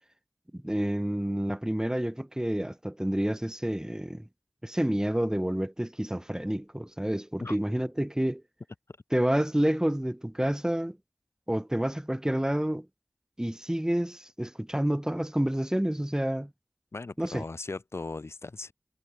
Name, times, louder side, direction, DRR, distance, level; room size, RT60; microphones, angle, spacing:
voice 1, 0.5-4.3 4.6-8.4 9.1-11.0 11.5-12.9 13.4-16.5 17.2-17.4, right 1 dB, 15° right, 5.4 m, -29 dB
voice 2, 16.9-18.7, left 3 dB, 70° left, 4.2 m, -38 dB
wide cardioid pair, 50°, 5 cm